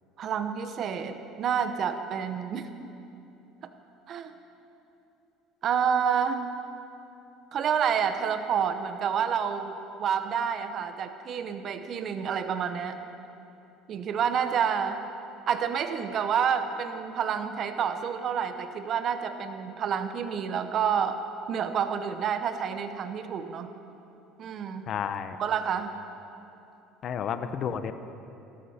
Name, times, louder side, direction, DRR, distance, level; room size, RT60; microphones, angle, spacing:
voice 1, 0.2-2.9 4.1-4.3 5.6-6.5 7.5-13.0 13.9-15.1 15.5-21.2 21.5-23.7 24.4-24.9 25.4-25.9, right 7 dB, 45° right, 8 dB, 0.8 m, -29 dB
voice 2, 24.9-25.4 27.0-27.9, left 8 dB, 45° left, 10 dB, 0.8 m, -31 dB
18.0 x 13.0 x 4.3 m, 2.8 s
supercardioid pair, 115°, 0 cm